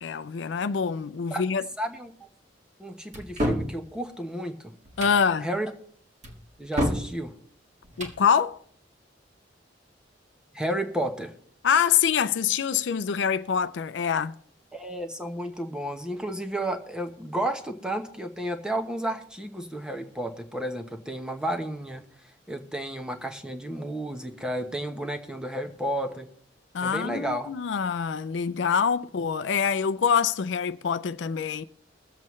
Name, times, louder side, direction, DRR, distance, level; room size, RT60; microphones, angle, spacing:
voice 1, 0.0-1.6 5.0-5.5 8.0-8.6 11.6-14.3 26.7-31.6, left 7 dB, 75° left, 0.4 m, -25 dB
voice 2, 1.8-2.1 2.8-4.5 5.4-5.7 6.6-7.3 10.5-11.3 14.7-22.0 22.5-26.3 26.8-27.5, right 1 dB, 5° right, 1.0 m, -32 dB
sound 1, 3.1-3.7 4.9-5.2 6.2-7.1 7.8-8.2, equal, 40° right, 1.7 m, -28 dB
22.5 x 7.6 x 3.1 m
head